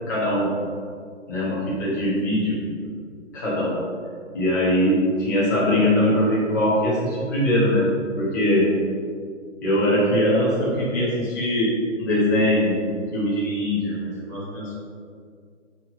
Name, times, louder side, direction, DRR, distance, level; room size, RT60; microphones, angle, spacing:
voice 1, 0.1-0.6 1.3-2.6 2.8-3.0 3.3-3.8 4.3-7.9 8.2-8.7 9.6-12.8 13.1-14.8, left 1 dB, 15° left, -8 dB, 1.2 m, -22 dB
6.4 x 4.5 x 4.4 m, 2.1 s
hypercardioid pair, 175°, 37 cm